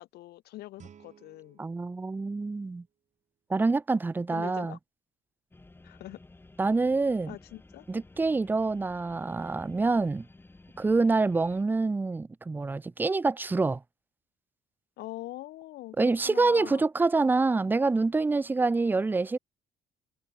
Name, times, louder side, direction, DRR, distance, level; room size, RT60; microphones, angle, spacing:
voice 1, 0.0-1.6 4.3-4.8 5.8-6.2 7.3-7.9 15.0-16.9, left 16 dB, 75° left, 0.7 m, -43 dB
Guitar, 0.8-3.5, right 8 dB, 45° right, 6.0 m, -58 dB
voice 2, 1.6-2.8 3.5-4.8 6.6-7.4 7.9-10.3 10.8-13.8 16.0-19.4, right 3 dB, 10° right, 0.4 m, -26 dB
sound 1, 5.5-11.6, left 2 dB, 15° left, 2.1 m, -54 dB
cardioid pair, 110°, 17 cm